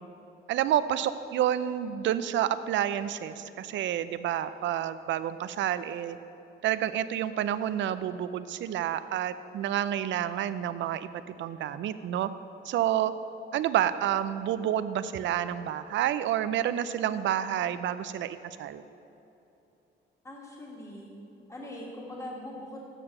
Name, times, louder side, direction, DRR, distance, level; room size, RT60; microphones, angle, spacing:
voice 1, 0.5-6.2 6.6-11.1 11.4-12.3 12.6-13.1 13.5-18.8, right 11 dB, 70° right, 13 dB, 0.4 m, -29 dB
voice 2, 20.2-21.1 21.5-22.8, left 1 dB, 15° left, -3 dB, 1.8 m, -41 dB
7.3 x 6.8 x 6.5 m, 2.9 s
cardioid pair, 90°, 20 cm